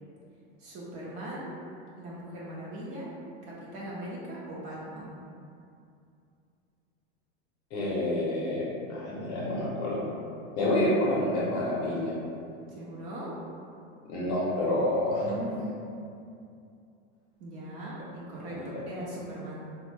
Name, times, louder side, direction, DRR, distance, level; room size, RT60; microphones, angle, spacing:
voice 1, 0.6-1.5 2.0-3.1 3.4-5.2 12.7-13.4 15.2-15.9 17.4-19.6, right 1 dB, 45° right, -6 dB, 0.6 m, -39 dB
voice 2, 7.7-10.1 10.6-12.1 14.1-15.3 18.5-18.7, left 1 dB, 40° left, -6 dB, 0.7 m, -28 dB
3.0 x 2.1 x 3.2 m, 2.5 s
supercardioid pair, 145°, 36 cm